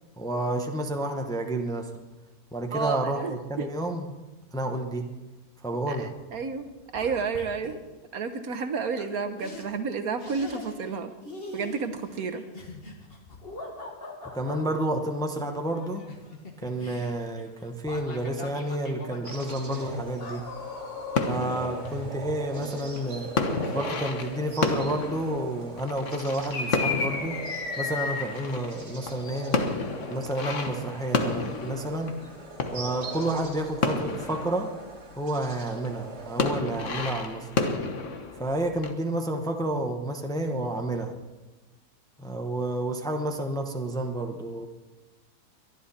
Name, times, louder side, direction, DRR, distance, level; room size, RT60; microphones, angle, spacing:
voice 1, 0.2-1.9 2.5-4.1 4.5-5.1 5.6-6.1 14.3-16.1 16.6-20.4 21.3-23.3 23.7-27.4 27.8-29.6 30.1-32.2 32.6-34.7 35.2-37.5 38.4-41.1 42.2-44.7, right 1 dB, 5° left, 3 dB, 0.9 m, -30 dB
voice 2, 2.7-3.7 5.9-6.7 6.9-7.8 8.1-11.1 11.5-12.4, right 5 dB, 65° right, 9 dB, 1.4 m, -31 dB
sound 1, 6.6-7.8 9.0-9.1 9.4-9.7 10.2-11.0 11.2-14.6 15.7-23.3 23.6-23.8, left 2 dB, 35° left, 1.9 m, -41 dB
sound 2, 19.2-35.5 35.8-38.9, left 4 dB, 50° left, 1.5 m, -32 dB
Frog sounds in a pond with bird song, 19.2-36.5, right 3 dB, 45° right, 2.0 m, -42 dB
22.0 x 11.0 x 4.3 m, 1.1 s
omnidirectional pair, 1.7 m